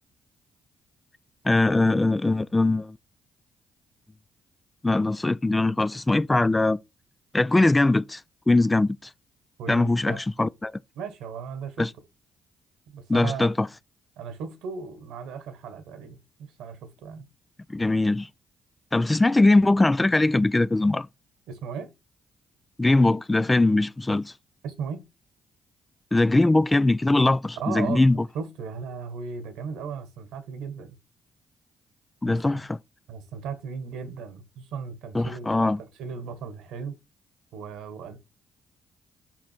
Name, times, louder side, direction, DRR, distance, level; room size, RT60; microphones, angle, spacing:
voice 1, 1.4-3.0 4.8-6.8 7.3-8.2 8.5-9.0 9.7-10.7 11.8-11.9 13.1-13.7 17.7-18.3 18.9-21.1 22.8-24.3 26.1-28.2 32.2-32.8 35.1-35.8, left 2 dB, 20° left, 0.4 m, -21 dB
voice 2, 9.6-10.5 10.9-11.9 12.9-13.5 14.2-17.2 21.5-21.9 24.6-25.0 27.6-31.0 32.2-32.6 33.1-35.7 36.0-37.0 37.5-38.2, right 6 dB, 75° right, 1.3 m, -36 dB
6.1 x 5.2 x 4.3 m
hypercardioid pair, 50°, 0 cm